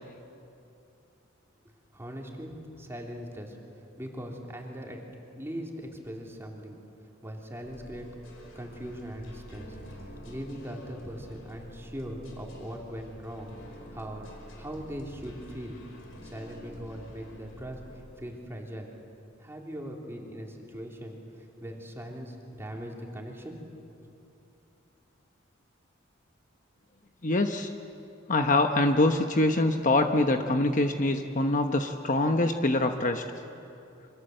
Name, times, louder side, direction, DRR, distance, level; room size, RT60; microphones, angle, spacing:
voice 1, 1.9-3.6 4.0-5.0 5.4-6.8 7.2-8.1 8.5-14.3 14.6-15.8 16.3-17.8 18.2-18.9 19.4-23.6, equal, 10° right, 0 dB, 3.3 m, -40 dB
sound 1, 7.6-18.2, equal, 85° left, 5.1 m, -48 dB
voice 2, 27.2-27.7 28.3-33.2, left 2 dB, 40° left, 6 dB, 1.0 m, -24 dB
28.5 x 25.5 x 7.9 m, 2.7 s
head